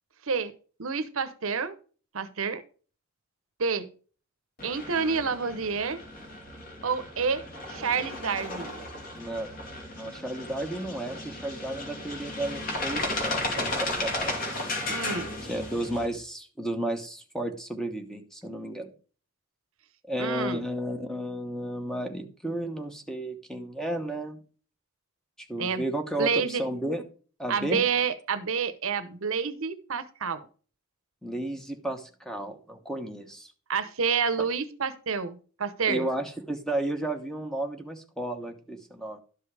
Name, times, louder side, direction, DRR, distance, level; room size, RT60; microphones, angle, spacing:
voice 1, 0.8-1.7 2.1-2.6 3.6-3.9 4.6-6.0 6.8-7.4 7.7-8.7 14.9-15.3 20.2-20.6 25.6-25.8 26.2-26.6 27.5-30.4 33.7-36.1, right 5 dB, 65° right, 13 dB, 0.8 m, -28 dB
sound 1, 4.6-16.1, left 2 dB, 40° left, 2.7 m, -35 dB
voice 2, 9.1-9.5 10.0-14.4 15.5-18.9 20.1-24.4 25.4-27.0 27.4-27.8 31.2-33.5 35.9-39.2, right 1 dB, ahead, 6 dB, 1.0 m, -33 dB
12.0 x 5.4 x 4.8 m, 0.39 s
head